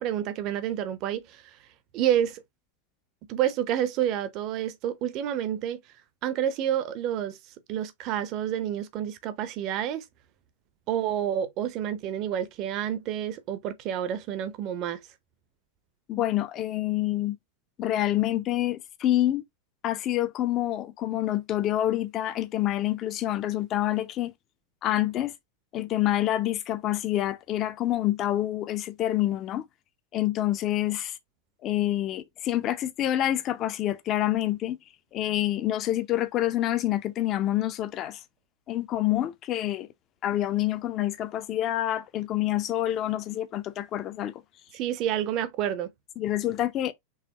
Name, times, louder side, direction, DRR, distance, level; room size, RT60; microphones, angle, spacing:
voice 1, 0.0-1.6 1.9-2.4 3.3-5.8 6.2-7.4 7.7-10.0 10.9-15.0 44.7-45.9, right 10 dB, 40° right, 0.7 m, -29 dB
voice 2, 16.1-17.4 17.8-19.4 19.8-24.3 24.8-25.3 25.7-29.6 30.1-31.2 31.6-34.8 35.1-38.2 38.7-39.9 40.2-44.4 46.2-46.9, left 13 dB, 35° left, 0.7 m, -27 dB
4.9 x 3.4 x 2.9 m
figure-of-eight pair, 90°, 0 cm